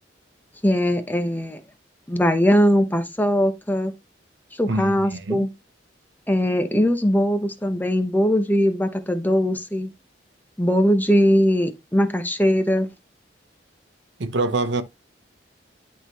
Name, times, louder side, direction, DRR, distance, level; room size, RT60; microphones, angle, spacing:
voice 1, 0.6-1.6 2.1-3.9 4.6-5.5 6.3-9.9 10.6-12.9, equal, 10° left, 0.8 m, -20 dB
voice 2, 4.7-5.5 14.2-14.8, right 2 dB, 75° right, 0.8 m, -25 dB
11.0 x 3.8 x 3.0 m
head